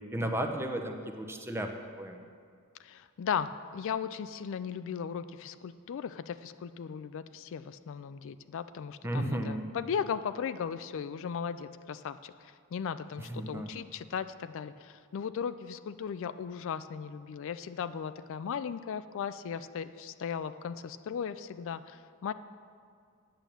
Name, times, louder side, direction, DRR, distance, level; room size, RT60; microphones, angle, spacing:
voice 1, 0.0-1.7 2.0-2.3 9.0-9.6 13.3-13.7, right 1 dB, 10° right, 4 dB, 0.7 m, -33 dB
voice 2, 2.8-22.3, left 7 dB, 60° left, 13 dB, 0.3 m, -37 dB
9.0 x 8.9 x 6.9 m, 2.2 s
head